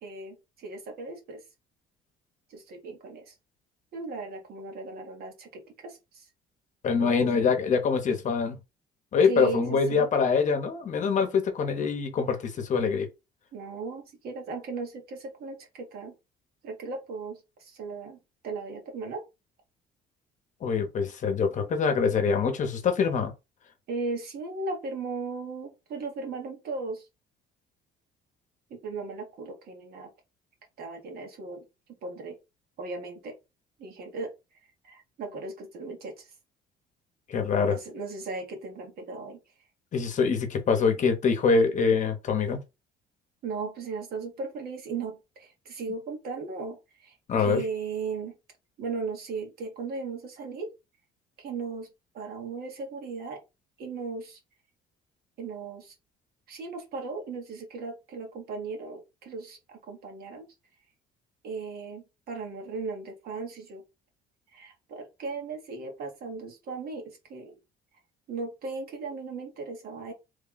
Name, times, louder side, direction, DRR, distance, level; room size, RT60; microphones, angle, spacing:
voice 1, 0.0-1.4 2.5-3.3 3.9-6.3 7.0-7.3 9.2-10.1 13.5-16.1 16.6-18.2 18.4-19.2 23.9-27.1 28.7-30.1 30.8-31.6 32.0-32.4 32.8-33.4 33.8-34.3 34.8-36.3 37.4-39.4 43.4-48.3 48.8-50.7 51.4-51.9 52.1-53.4 53.8-54.4 55.4-55.9 56.5-60.5 61.4-63.8 64.5-67.6 68.3-70.1, right 4 dB, 65° right, 1.4 m, -37 dB
voice 2, 6.8-8.6 9.1-13.1 20.6-23.3 37.3-37.8 39.9-42.6 47.3-47.6, left 5 dB, 45° left, 0.9 m, -24 dB
3.2 x 2.3 x 3.9 m
cardioid pair, 110°, 17 cm